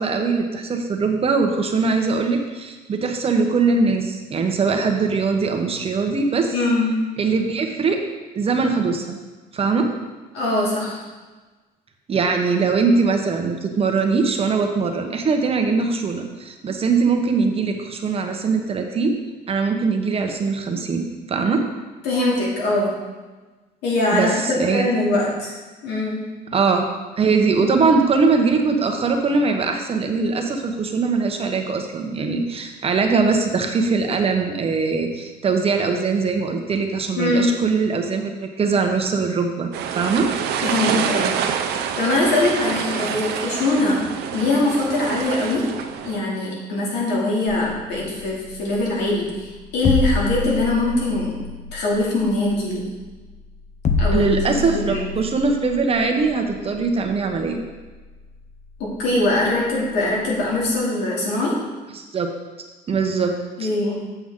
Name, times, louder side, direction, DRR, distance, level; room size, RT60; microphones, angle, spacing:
voice 1, 0.0-6.5 7.2-8.0 8.3-9.2 9.5-9.9 12.1-19.2 19.5-21.6 24.1-24.8 26.5-26.9 27.2-40.3 54.1-57.6 61.9-62.3 62.9-63.7, right 4 dB, 35° right, 4 dB, 1.0 m, -21 dB
voice 2, 6.5-6.9 10.3-11.0 22.0-23.0 23.8-25.5 25.8-26.3 37.1-37.6 40.6-41.3 41.6-44.0 44.3-45.7 46.0-51.4 51.7-52.9 54.0-54.4 54.7-55.0 56.7-56.8 58.8-61.6 63.6-64.0, left 2 dB, 85° left, -4 dB, 2.6 m, -22 dB
sound 1, 39.7-46.2, right 8 dB, 75° right, 0.7 m, -26 dB
sound 2, 47.5-60.8, left 4 dB, 45° left, 0.8 m, -29 dB
7.7 x 7.0 x 3.7 m, 1.3 s
cardioid pair, 110°, 17 cm